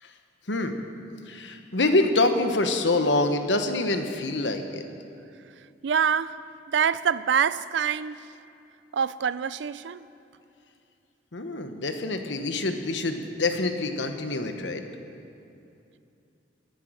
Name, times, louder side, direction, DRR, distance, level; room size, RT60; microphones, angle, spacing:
voice 1, 0.5-0.8 1.3-4.8 11.3-14.8, left 2 dB, 90° left, 1.1 m, -26 dB
voice 2, 5.8-6.4 6.7-8.2 8.9-10.0, right 7 dB, 85° right, 0.4 m, -25 dB
20.5 x 9.4 x 6.3 m
head